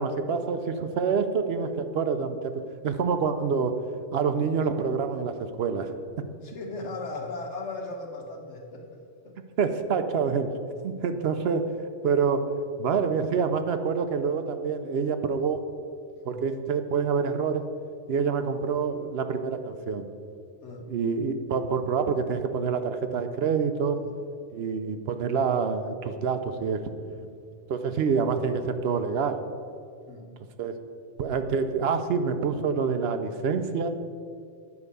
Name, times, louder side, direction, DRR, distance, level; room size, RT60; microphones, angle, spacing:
voice 1, 0.0-2.5 2.8-3.7 4.1-5.9 9.6-10.5 10.8-11.6 12.0-12.4 12.8-15.6 16.2-17.6 18.1-20.1 20.9-24.0 24.5-26.8 27.7-29.4 30.6-30.8 31.2-33.9, right 5 dB, 65° right, 8 dB, 0.8 m, -27 dB
voice 2, 6.4-9.4 16.2-16.4 20.6-20.9 23.9-24.1 27.1-27.3 30.1-30.3, left 2 dB, 80° left, 2 dB, 1.5 m, -38 dB
9.6 x 4.8 x 6.7 m, 2.3 s
omnidirectional pair, 1.2 m